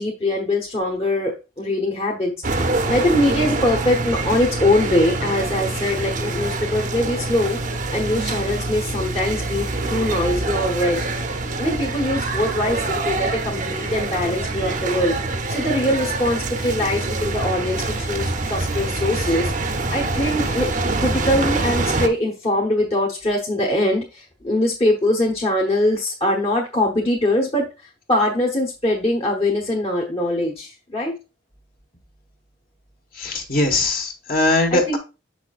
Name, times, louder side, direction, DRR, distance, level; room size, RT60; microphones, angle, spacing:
voice 1, 0.0-2.3 2.9-7.6 7.9-11.0 11.6-15.1 15.5-19.5 19.9-20.7 21.0-27.7 28.1-31.1 34.7-35.0, left 1 dB, 30° left, -2 dB, 1.2 m, -22 dB
sound 1, 2.4-22.1, right 2 dB, 40° right, 0.7 m, -25 dB
voice 2, 33.2-35.0, left 2 dB, 50° left, 3 dB, 1.5 m, -20 dB
7.5 x 6.1 x 2.4 m, 0.29 s
head